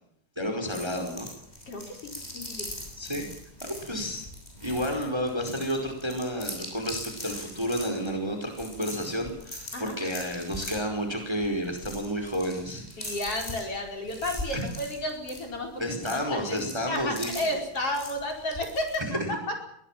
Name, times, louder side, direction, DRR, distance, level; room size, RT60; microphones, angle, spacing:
voice 1, 0.4-1.3 3.0-3.2 3.6-4.2 4.6-13.2 14.5-14.7 15.8-17.3 19.0-19.3, equal, 10° right, 4 dB, 4.4 m, -31 dB
sound 1, 0.7-19.0, left 1 dB, 10° left, 7.1 m, -41 dB
voice 2, 1.7-2.7 9.7-9.9 13.0-15.8 16.1-19.4, left 1 dB, 45° left, 3 dB, 5.8 m, -32 dB
22.5 x 18.0 x 7.5 m, 0.70 s
omnidirectional pair, 3.6 m